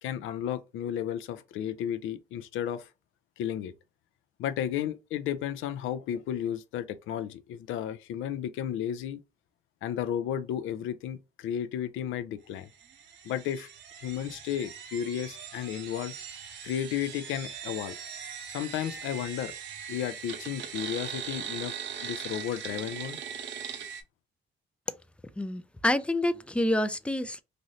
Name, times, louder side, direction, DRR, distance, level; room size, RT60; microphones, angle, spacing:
voice 1, 0.0-2.9 3.4-3.7 4.4-9.2 9.8-12.7 13.2-13.7 14.0-16.1 16.6-18.0 18.5-19.5 19.9-21.7 22.0-23.2, left 10 dB, 85° left, 0.4 m, -33 dB
sound 1, 12.8-24.0, right 7 dB, 70° right, 0.7 m, -40 dB
voice 2, 25.4-27.4, left 1 dB, 5° left, 0.3 m, -28 dB
3.1 x 2.6 x 2.7 m
cardioid pair, 90°, 20 cm